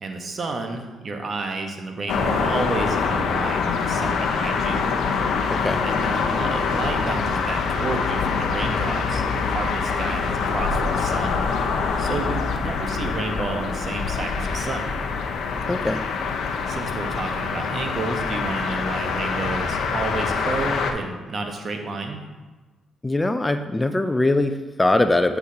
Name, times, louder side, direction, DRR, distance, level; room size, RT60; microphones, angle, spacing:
voice 1, 0.0-4.9 5.8-11.4 12.0-14.9 16.7-22.2, right 3 dB, 50° right, 4 dB, 1.0 m, -31 dB
sound 1, 2.1-20.9, left 5 dB, 70° left, 0.6 m, -25 dB
voice 2, 5.5-5.8 15.7-16.0 23.0-25.4, left 2 dB, 20° left, 9 dB, 0.4 m, -21 dB
8.3 x 5.8 x 2.8 m, 1.2 s
supercardioid pair, 55°, 0 cm